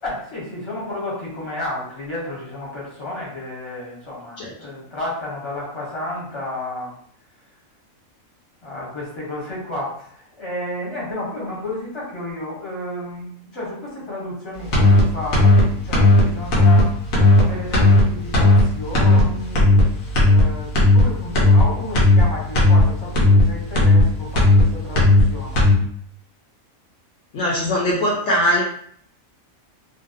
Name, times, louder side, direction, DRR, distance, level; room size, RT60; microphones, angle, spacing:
voice 1, 0.0-6.9 8.6-16.9 17.4-19.9 20.2-25.7, left 1 dB, 25° left, -5 dB, 0.8 m, -32 dB
sound 1, 14.7-15.0 15.3-15.6 15.9-16.2 16.5-16.8 17.1-17.4 17.7-18.0 18.3-18.6 18.9-19.2 19.5-19.8 20.1-20.4 20.7-21.0 21.3-21.6 21.9-22.2 22.5-22.8 23.1-23.4 23.7-24.0 24.3-24.6 24.9-25.2 25.5-25.7, left 2 dB, 85° left, 1.1 m, -13 dB
voice 2, 27.3-28.6, equal, 65° left, -4 dB, 0.9 m, -20 dB
2.6 x 2.1 x 2.4 m, 0.62 s
omnidirectional pair, 1.4 m